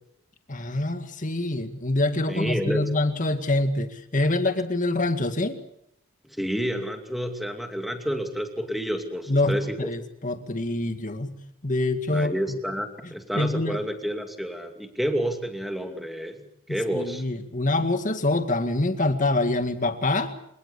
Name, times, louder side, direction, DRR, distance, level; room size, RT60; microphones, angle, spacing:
voice 1, 0.5-5.6 9.3-11.4 11.6-12.6 13.0-13.8 16.7-20.3, left 2 dB, 35° left, 8 dB, 2.1 m, -25 dB
voice 2, 2.3-2.9 6.4-9.9 12.1-16.4 16.7-17.2, equal, ahead, 5 dB, 2.6 m, -29 dB
27.0 x 18.5 x 8.6 m, 0.75 s
head